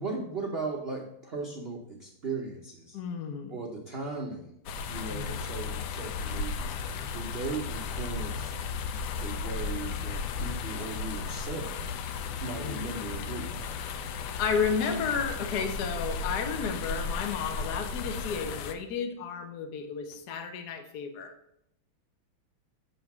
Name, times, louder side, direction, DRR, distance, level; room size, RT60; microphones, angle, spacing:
voice 1, 0.0-3.0 3.5-4.5 4.9-8.5 8.8-11.7 12.4-13.7, right 3 dB, 75° right, -2 dB, 0.5 m, -37 dB
voice 2, 2.9-3.6 5.1-5.4 12.6-12.8 14.4-21.3, left 6 dB, 65° left, 6 dB, 1.1 m, -32 dB
sound 1, 4.7-18.7, left 5 dB, 85° left, 0.9 m, -35 dB
7.3 x 3.8 x 5.9 m, 0.76 s
omnidirectional pair, 2.4 m